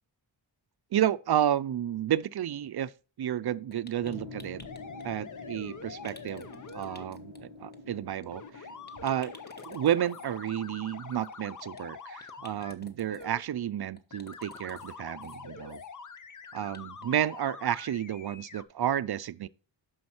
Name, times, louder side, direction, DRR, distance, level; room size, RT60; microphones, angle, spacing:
voice 1, 0.9-2.9 3.2-4.6 5.0-8.7 9.0-9.3 9.7-15.8 16.5-19.5, right 11 dB, 60° right, 0.5 m, -31 dB
sound 1, 3.7-5.0 6.0-7.4 7.7-7.9 8.2-8.3 8.6-8.7 8.9-10.3 11.2-11.8 12.2-13.3 13.9-14.9 15.2-15.4 15.7-15.9 16.1-17.1 17.4-17.5 17.9-18.0, left 2 dB, 20° left, 1.2 m, -53 dB
sound 2, 4.0-10.3, left 3 dB, 85° left, 1.5 m, -47 dB
sound 3, 4.6-7.0 8.3-12.7 13.1-13.4 14.1-18.6, left 5 dB, 45° left, 0.7 m, -45 dB
9.5 x 6.3 x 4.4 m
wide cardioid pair, 110°, 45 cm